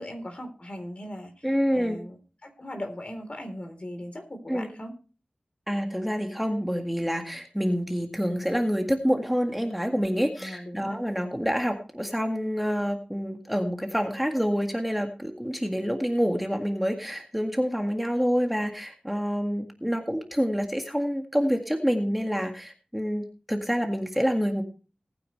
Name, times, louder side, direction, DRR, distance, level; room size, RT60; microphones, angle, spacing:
voice 1, 0.0-4.9 10.4-11.0, equal, 45° left, 6 dB, 3.7 m, -39 dB
voice 2, 1.4-2.0 4.5-4.7 5.7-24.6, equal, 5° right, 3 dB, 1.9 m, -27 dB
19.5 x 9.3 x 3.2 m, 0.34 s
wide cardioid pair, 75°, 3 cm